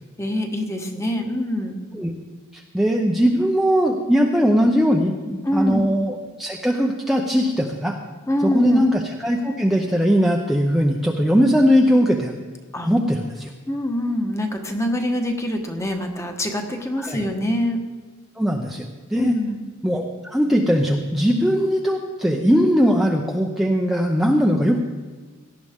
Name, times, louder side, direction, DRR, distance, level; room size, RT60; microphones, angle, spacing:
voice 1, 0.2-1.7 5.4-5.8 8.3-8.8 12.7-12.9 13.7-17.8 19.1-19.6, left 1 dB, 15° left, 4 dB, 1.3 m, -24 dB
voice 2, 2.7-8.0 8.4-12.3 12.8-13.5 17.0-17.3 18.4-19.3 19.8-24.8, equal, ahead, 0 dB, 0.7 m, -20 dB
18.0 x 12.0 x 3.7 m, 1.4 s
head